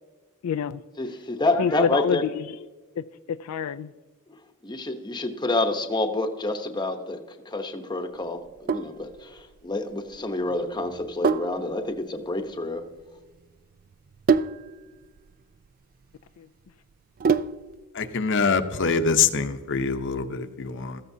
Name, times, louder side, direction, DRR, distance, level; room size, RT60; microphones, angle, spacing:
voice 1, 0.4-0.8 1.5-2.6 3.0-3.9 16.4-16.5, left 7 dB, 80° left, 10 dB, 0.4 m, -27 dB
voice 2, 1.0-2.2 4.6-7.2 7.4-12.8, left 2 dB, 20° left, 6 dB, 0.9 m, -28 dB
Sink (filling or washing), 8.4-17.8, right 5 dB, 40° right, 0.3 m, -29 dB
voice 3, 17.9-21.0, left 5 dB, 60° left, 8 dB, 0.8 m, -24 dB
15.5 x 14.0 x 2.7 m, 1.3 s
head